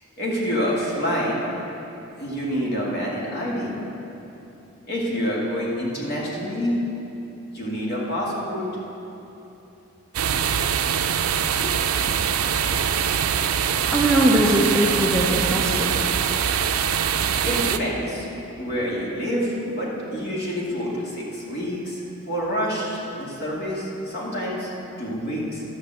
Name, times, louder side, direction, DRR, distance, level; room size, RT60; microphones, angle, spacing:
voice 1, 0.2-1.4 2.2-3.7 4.9-6.8 7.5-8.6 17.4-18.3 18.6-24.7 25.0-25.6, equal, 50° left, -5 dB, 2.3 m, -27 dB
sound 1, 10.1-17.8, right 8 dB, 90° right, 0.5 m, -23 dB
voice 2, 13.9-16.0, right 1 dB, 5° left, -4 dB, 0.7 m, -21 dB
12.0 x 5.6 x 7.7 m, 3.0 s
head